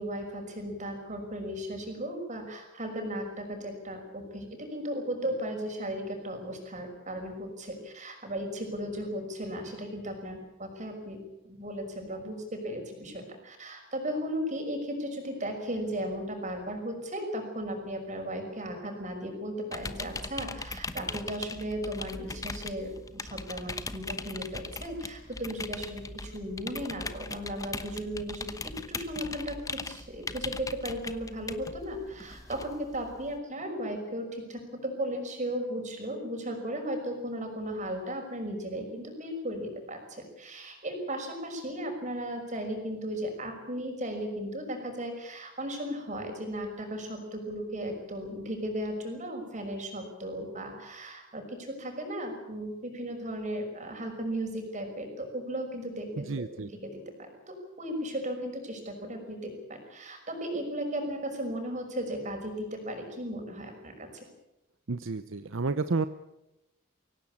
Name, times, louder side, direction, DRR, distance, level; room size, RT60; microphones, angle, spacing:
voice 1, 0.0-11.2 11.4-64.2, equal, 35° right, 4 dB, 5.9 m, -36 dB
sound 1, 19.7-33.4, left 3 dB, 15° left, 1.0 m, -40 dB
voice 2, 56.3-56.7 64.9-66.1, right 3 dB, 65° right, 12 dB, 0.8 m, -30 dB
24.0 x 17.0 x 8.7 m, 0.95 s
head